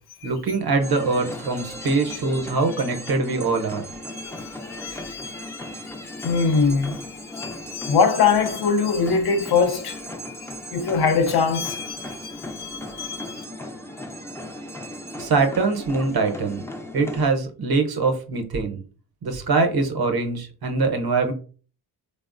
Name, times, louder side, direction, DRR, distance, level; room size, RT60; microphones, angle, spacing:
voice 1, 0.2-3.8 15.2-16.6 16.9-18.8 19.2-21.3, right 3 dB, 55° right, 0.8 m, -23 dB
sound 1, 0.8-17.2, left 1 dB, 5° left, 0.4 m, -37 dB
voice 2, 4.1-13.4, left 5 dB, 60° left, 0.6 m, -24 dB
3.4 x 2.0 x 2.4 m
cardioid pair, 60°, 43 cm